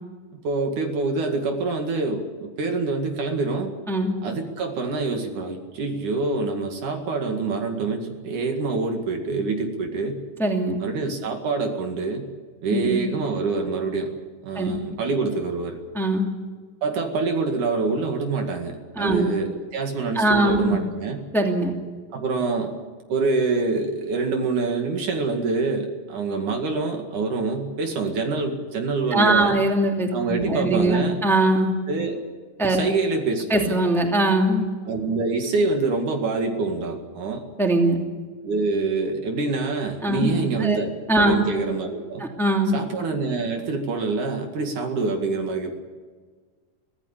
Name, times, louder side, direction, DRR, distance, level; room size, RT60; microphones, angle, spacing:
voice 1, 0.4-3.7 4.2-10.2 10.8-12.3 12.6-14.1 14.4-15.8 16.8-21.2 22.1-22.7 23.1-29.5 30.1-31.2 31.9-32.2 32.7-33.8 34.9-37.4 38.4-42.2 42.7-45.8, right 3 dB, 65° right, 4 dB, 3.5 m, -26 dB
voice 2, 10.4-10.8 12.7-13.0 14.5-14.8 15.9-16.3 19.0-19.3 20.1-20.8 21.3-21.7 29.1-31.7 32.6-32.8 33.5-34.6 37.6-38.0 40.0-40.8 41.1-41.4 42.2-42.8, right 1 dB, ahead, 2 dB, 2.1 m, -21 dB
24.5 x 16.5 x 8.3 m, 1.5 s
omnidirectional pair, 3.9 m